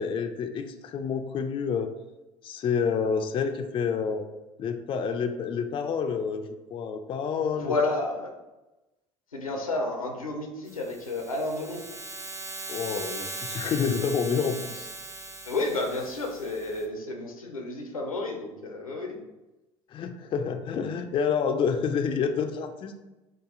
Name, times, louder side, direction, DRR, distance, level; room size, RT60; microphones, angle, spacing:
voice 1, 0.0-1.9 2.4-4.3 4.6-7.7 12.7-14.9 19.9-23.0, left 6 dB, 30° left, 7 dB, 0.3 m, -28 dB
voice 2, 7.6-8.3 9.3-11.8 15.5-19.2, left 2 dB, 85° left, 2 dB, 0.5 m, -31 dB
sound 1, 10.7-16.9, right 2 dB, 15° right, 0.6 m, -39 dB
4.8 x 2.3 x 2.5 m, 1.0 s
figure-of-eight pair, 60°, 17 cm